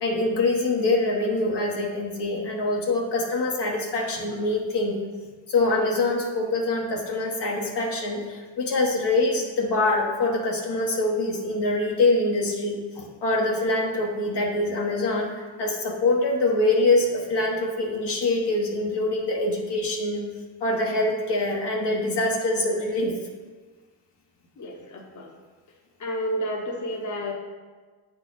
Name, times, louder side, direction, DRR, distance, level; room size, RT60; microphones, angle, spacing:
voice 1, 0.0-5.0 5.5-20.2 20.6-23.2, left 2 dB, 55° left, -1 dB, 1.1 m, -24 dB
voice 2, 24.6-25.3 26.0-27.3, equal, 35° left, 0 dB, 1.1 m, -31 dB
7.8 x 4.1 x 3.9 m, 1.4 s
cardioid pair, 80°, 48 cm